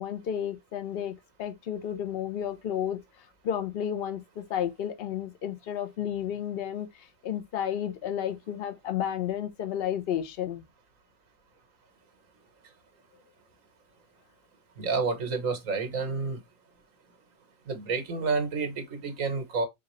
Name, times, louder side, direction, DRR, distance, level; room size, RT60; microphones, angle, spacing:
voice 1, 0.0-3.0 3.4-10.6, left 9 dB, 50° left, 0.9 m, -32 dB
voice 2, 14.8-16.4 17.7-19.7, right 4 dB, 65° right, 1.6 m, -29 dB
4.7 x 3.1 x 3.0 m
omnidirectional pair, 1.5 m